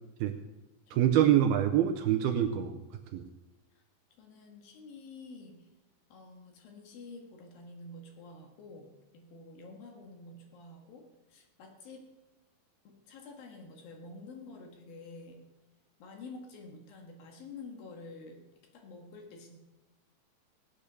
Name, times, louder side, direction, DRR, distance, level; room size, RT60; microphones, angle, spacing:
voice 1, 0.9-2.8 3.1-3.3, right 11 dB, 80° right, 7 dB, 2.3 m, -25 dB
voice 2, 4.2-5.7 6.1-12.0 12.8-15.4 16.0-18.4 18.7-19.6, left 3 dB, 60° left, 3 dB, 3.1 m, -49 dB
17.5 x 8.8 x 6.8 m, 1.0 s
omnidirectional pair, 5.0 m